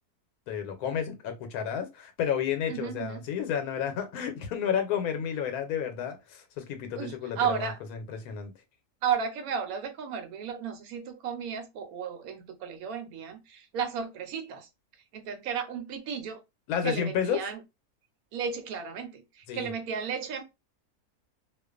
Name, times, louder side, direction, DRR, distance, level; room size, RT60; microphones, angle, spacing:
voice 1, 0.5-8.5 16.7-17.4 19.5-19.7, left 8 dB, 85° left, 1.1 m, -31 dB
voice 2, 2.7-3.2 7.0-7.8 9.0-14.7 15.1-16.4 16.8-17.6 18.3-20.4, right 7 dB, 80° right, 1.1 m, -33 dB
2.4 x 2.3 x 2.3 m
omnidirectional pair, 1.5 m